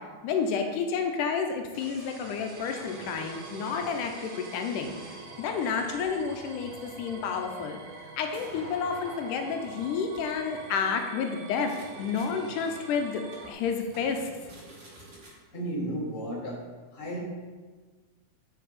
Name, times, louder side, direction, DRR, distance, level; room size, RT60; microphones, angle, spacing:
voice 1, 0.2-5.0 5.4-7.8 8.2-11.7 12.0-13.2 13.5-14.3, left 6 dB, 85° left, 4 dB, 2.2 m, -30 dB
sound 1, 1.7-15.2, right 2 dB, 55° right, 2.0 m, -50 dB
sound 2, 2.6-13.5, right 3 dB, 80° right, 2.3 m, -45 dB
sound 3, 7.1-11.8 12.1-12.3 12.8-12.9 13.3-13.5 13.9-14.0 14.3-15.3, right 1 dB, 35° right, 2.4 m, -51 dB
voice 2, 15.5-16.6 16.9-17.2, right 1 dB, 20° left, -4 dB, 1.6 m, -33 dB
9.2 x 5.3 x 4.1 m, 1.4 s
omnidirectional pair, 3.6 m